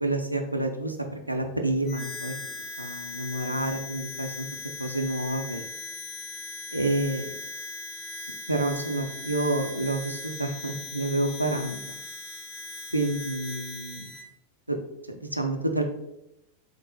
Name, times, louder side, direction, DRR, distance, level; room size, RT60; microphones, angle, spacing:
voice 1, 0.0-2.3 2.8-4.5 4.8-5.6 6.7-7.3 8.5-12.0 12.9-14.1 14.7-14.8 15.1-15.8, right 2 dB, 85° right, 5 dB, 0.3 m, -29 dB
Harmonica, 1.8-14.3, left 3 dB, 35° left, 0.9 m, -39 dB
3.1 x 2.1 x 3.2 m, 0.85 s
figure-of-eight pair, 90°, 0 cm